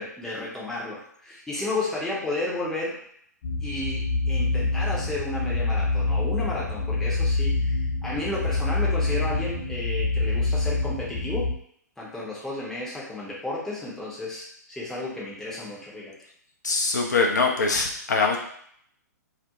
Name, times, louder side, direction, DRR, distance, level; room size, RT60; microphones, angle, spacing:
voice 1, 0.0-3.0 3.6-11.5 12.0-16.2, left 2 dB, 5° left, -6 dB, 0.6 m, -32 dB
sound 1, 3.4-11.5, left 3 dB, 40° left, 0.9 m, -26 dB
voice 2, 16.6-18.4, left 4 dB, 70° left, 0 dB, 0.5 m, -23 dB
2.4 x 2.1 x 2.9 m, 0.65 s
figure-of-eight pair, 120°, 10 cm